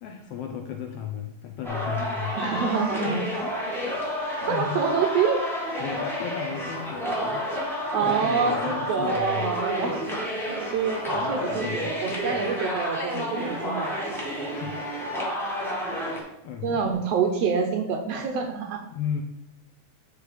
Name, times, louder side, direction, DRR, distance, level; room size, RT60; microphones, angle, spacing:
voice 1, 0.0-2.4 3.0-3.6 4.4-4.8 5.8-7.4 8.0-9.6 11.1-11.9 12.2-12.4 14.5-14.9 16.1-16.8 18.8-19.2, left 8 dB, 75° left, 4 dB, 1.5 m, -35 dB
sound 1, 1.6-16.2, equal, 5° left, 0.4 m, -30 dB
voice 2, 2.4-3.2 4.1-4.2 4.5-5.4 7.9-10.0 10.7-14.0 16.6-18.8, right 6 dB, 70° right, 4 dB, 1.6 m, -26 dB
9.3 x 3.3 x 4.9 m, 0.83 s
omnidirectional pair, 3.3 m